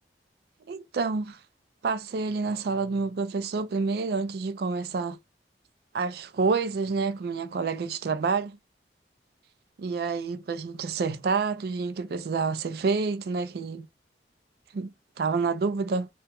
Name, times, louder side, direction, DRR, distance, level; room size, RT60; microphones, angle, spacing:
voice 1, 0.7-1.4 1.8-5.2 5.9-8.6 9.8-13.9 14.7-16.1, right 4 dB, 55° right, 0.3 m, -28 dB
2.8 x 2.2 x 2.9 m
head